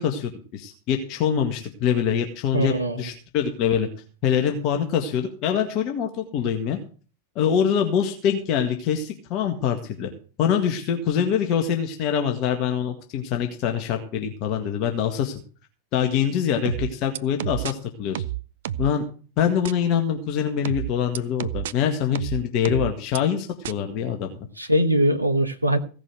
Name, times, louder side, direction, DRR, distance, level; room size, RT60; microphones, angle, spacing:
voice 1, 0.0-3.9 4.2-6.8 7.4-10.1 10.4-15.4 15.9-18.2 18.8-19.0 19.4-24.5, left 8 dB, 40° left, 4 dB, 1.8 m, -24 dB
voice 2, 2.5-3.1 24.6-25.8, right 1 dB, 85° right, 5 dB, 1.2 m, -21 dB
sound 1, 16.7-17.7 18.2-19.0 19.7-19.8 20.7-21.7 22.2-23.2 23.7-23.8, right 12 dB, 60° right, 0.5 m, -29 dB
16.5 x 6.1 x 7.7 m, 0.39 s
figure-of-eight pair, 90°, 0 cm